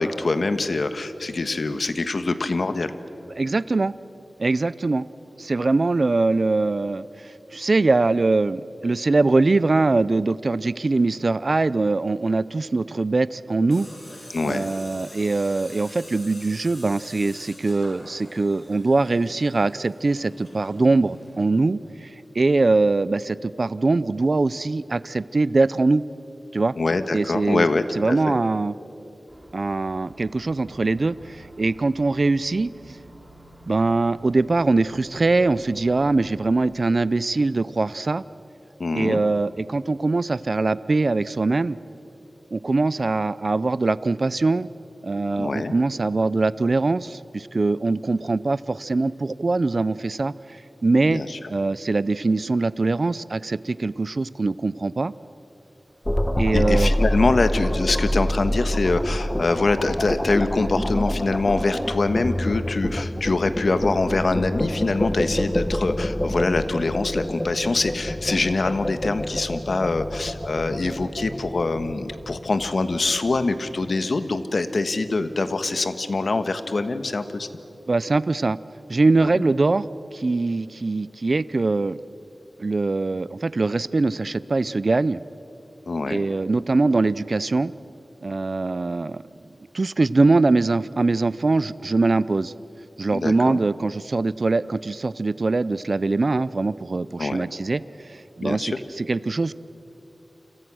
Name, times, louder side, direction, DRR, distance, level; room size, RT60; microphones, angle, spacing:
voice 1, 0.0-2.9 14.3-14.7 26.8-28.4 38.8-39.2 45.4-45.7 51.0-51.4 56.5-77.5 79.2-79.4 85.9-86.2 93.1-93.6 97.2-97.5 98.4-98.8, left 3 dB, 70° left, 10 dB, 1.4 m, -24 dB
voice 2, 3.4-3.9 4.4-5.1 5.4-13.9 14.4-22.1 22.3-26.0 26.5-26.7 27.1-27.7 28.0-28.8 29.5-32.7 33.7-38.2 38.9-41.8 42.5-44.7 45.0-50.3 50.8-51.2 51.5-55.1 56.4-56.9 77.9-78.6 78.9-79.9 80.1-82.0 82.6-85.2 86.1-87.7 88.2-89.2 89.7-92.5 93.0-99.5, right 3 dB, 55° right, 17 dB, 0.5 m, -22 dB
Tools, 13.7-21.5, left 1 dB, 40° left, 8.0 m, -45 dB
sound 1, 29.3-36.8, right 1 dB, 10° right, 4.2 m, -49 dB
sound 2, 56.1-73.3, left 1 dB, 15° left, 1.0 m, -27 dB
29.5 x 26.5 x 6.3 m, 2.9 s
wide cardioid pair, 80°, 0 cm